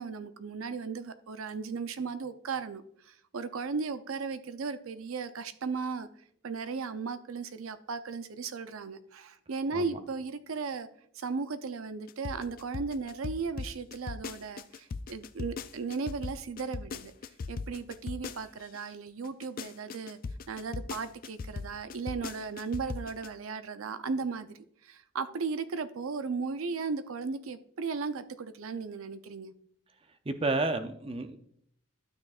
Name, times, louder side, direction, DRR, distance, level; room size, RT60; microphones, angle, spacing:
voice 1, 0.0-6.1 6.4-10.9 11.2-17.1 17.5-20.2 20.5-29.5, right 4 dB, 75° right, 11 dB, 0.5 m, -36 dB
sound 1, 12.1-18.8 19.2-23.3, left 4 dB, 40° left, 0.3 m, -38 dB
voice 2, 30.3-31.4, right 2 dB, 25° right, 9 dB, 0.5 m, -31 dB
12.5 x 6.5 x 2.4 m, 0.69 s
head